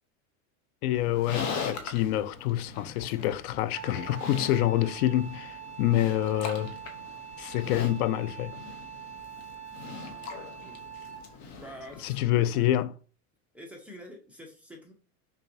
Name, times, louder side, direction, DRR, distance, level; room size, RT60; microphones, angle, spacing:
voice 1, 0.8-6.7 7.4-8.5 12.0-12.9, left 13 dB, 85° left, 0.5 m, -27 dB
Livestock farm animals working animals, 0.9-12.2, left 6 dB, 40° left, 0.7 m, -41 dB
Wind instrument woodwind instrument, 3.7-11.4, right 8 dB, 50° right, 1.4 m, -44 dB
voice 2, 10.0-10.8 11.5-12.7 13.5-14.9, equal, 5° right, 0.4 m, -47 dB
5.5 x 2.2 x 2.6 m
supercardioid pair, 145°, 43 cm